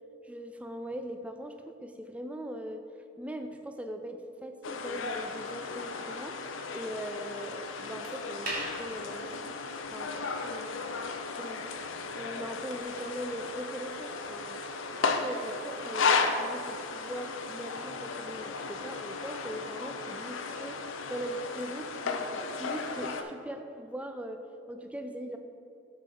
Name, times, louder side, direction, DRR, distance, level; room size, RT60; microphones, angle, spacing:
voice 1, 0.2-2.8 3.2-6.4 6.7-9.7 9.9-11.1 11.3-11.8 12.1-14.6 15.0-20.8 21.1-25.4, equal, 5° right, 6 dB, 0.3 m, -40 dB
sound 1, 4.6-23.2, left 4 dB, 85° left, 0.5 m, -35 dB
sound 2, 6.1-23.3, right 1 dB, 45° right, 1.6 m, -50 dB
7.6 x 6.4 x 4.2 m, 2.6 s
head